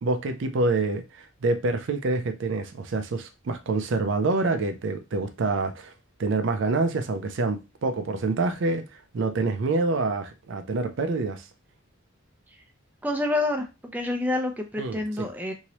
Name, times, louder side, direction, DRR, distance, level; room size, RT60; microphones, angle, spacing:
voice 1, 0.0-5.9 6.2-11.5 14.8-15.3, right 3 dB, 65° right, 0.4 m, -27 dB
voice 2, 13.0-13.7 13.9-15.5, left 2 dB, 10° right, 0.4 m, -27 dB
3.0 x 2.7 x 2.8 m
head